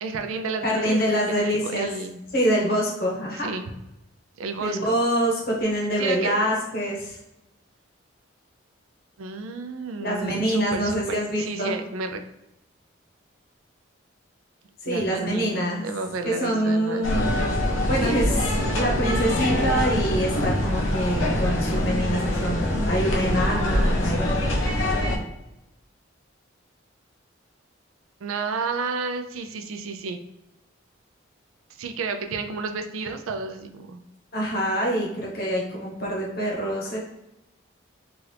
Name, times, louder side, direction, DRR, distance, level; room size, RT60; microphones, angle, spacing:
voice 1, 0.0-2.2 3.3-3.7 4.4-4.9 6.0-6.4 9.2-12.2 14.8-17.1 18.0-18.3 28.2-30.2 31.8-34.0 36.9-37.0, right 4 dB, 90° right, 6 dB, 0.4 m, -31 dB
voice 2, 0.6-1.9 2.3-3.5 4.6-7.2 10.0-11.8 14.8-15.8 16.2-17.4 17.8-18.4 18.7-24.3 34.3-37.0, equal, 50° left, -2 dB, 0.9 m, -25 dB
sound 1, 17.0-25.2, left 1 dB, 80° left, 0.6 m, -24 dB
2.9 x 2.4 x 3.2 m, 0.90 s
head